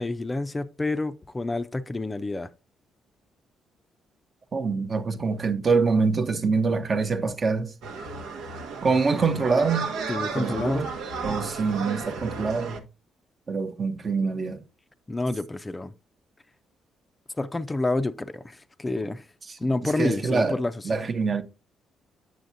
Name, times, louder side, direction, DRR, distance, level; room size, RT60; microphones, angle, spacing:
voice 1, 0.0-2.5 10.1-10.8 15.1-15.9 17.4-19.3 19.6-20.7, left 2 dB, 20° left, 0.4 m, -28 dB
voice 2, 4.5-7.7 8.8-9.9 10.4-10.9 11.2-12.8 13.5-14.6 19.6-19.7 20.0-20.6 20.8-21.4, right 4 dB, 40° right, 0.8 m, -25 dB
sound 1, 7.8-12.8, right 4 dB, 90° right, 1.0 m, -34 dB
7.8 x 6.2 x 2.6 m
cardioid pair, 90°, 0 cm